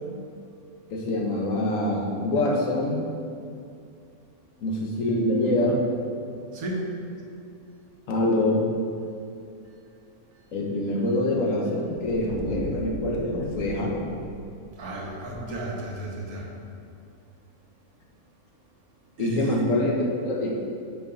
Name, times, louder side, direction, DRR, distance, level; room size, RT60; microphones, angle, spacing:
voice 1, 0.9-3.0 4.6-5.8 8.1-8.7 10.5-14.0 19.2-20.6, left 1 dB, 65° left, 0 dB, 1.2 m, -25 dB
voice 2, 6.5-6.9 14.8-16.5 19.2-19.6, right 1 dB, 80° right, -1 dB, 1.5 m, -33 dB
sound 1, 9.6-9.7 10.3-10.7 11.0-11.2 11.7-15.6, right 1 dB, 60° right, 1.0 m, -41 dB
8.6 x 4.9 x 3.7 m, 2.5 s
omnidirectional pair, 1.5 m